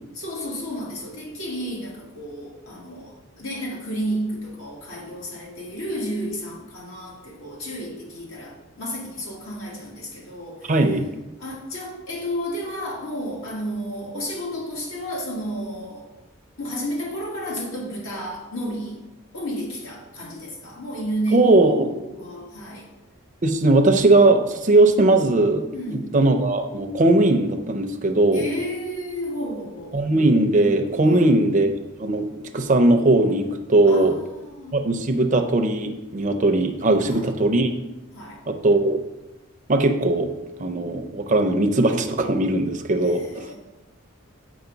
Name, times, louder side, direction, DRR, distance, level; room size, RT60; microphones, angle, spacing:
voice 1, 0.1-10.7 11.4-16.1 16.6-19.0 19.3-22.9 25.7-26.2 28.3-30.0 31.0-31.3 33.9-35.0 37.1-37.2 38.1-38.4 43.0-43.6, equal, 85° left, -3 dB, 1.9 m, -32 dB
voice 2, 10.7-11.1 21.3-21.9 23.4-28.5 29.9-31.7 32.0-32.3 32.5-34.2 34.7-37.7 38.5-39.0 39.7-40.3 40.6-43.4, right 2 dB, 35° right, 5 dB, 0.5 m, -19 dB
7.0 x 5.0 x 3.9 m, 1.0 s
head